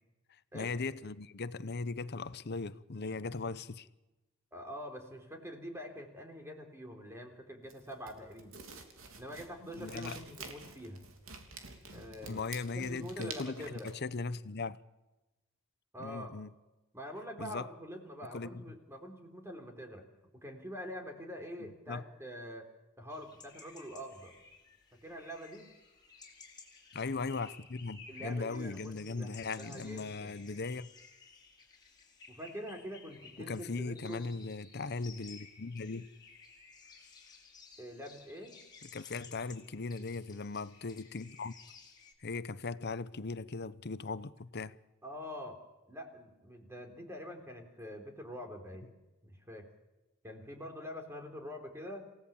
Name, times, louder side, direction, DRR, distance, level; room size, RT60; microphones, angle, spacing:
voice 1, 0.5-3.9 9.7-10.2 12.3-14.8 16.0-16.5 17.4-17.7 18.3-18.6 21.6-22.0 26.9-30.9 33.4-36.1 38.9-41.5 42.2-44.8, left 4 dB, 55° left, 0.8 m, -38 dB
voice 2, 4.5-8.6 9.2-11.1 11.9-12.4 12.7-13.9 15.9-16.3 16.9-20.1 20.3-22.7 23.0-24.3 25.0-25.7 28.1-30.3 32.3-34.2 37.8-38.6 45.0-45.6 45.9-48.9 49.2-49.7 50.2-52.1, equal, 15° right, 3.5 m, -45 dB
sound 1, 7.7-13.9, right 4 dB, 85° right, 3.3 m, -49 dB
sound 2, 23.1-42.1, left 5 dB, 20° left, 4.0 m, -56 dB
28.0 x 16.5 x 7.2 m
head